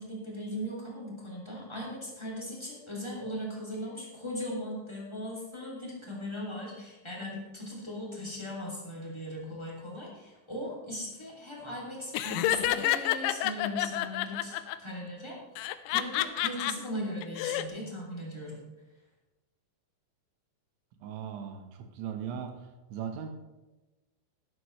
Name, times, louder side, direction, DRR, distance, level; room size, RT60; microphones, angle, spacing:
voice 1, 0.0-18.6, equal, 10° left, -4 dB, 1.4 m, -38 dB
Laughter, 12.1-14.8 15.6-16.7 17.2-17.6, left 14 dB, 85° left, 2.9 m, -29 dB
voice 2, 21.0-22.6 22.9-23.3, right 8 dB, 75° right, 5 dB, 3.3 m, -38 dB
12.5 x 12.0 x 3.2 m, 1.1 s
omnidirectional pair, 5.5 m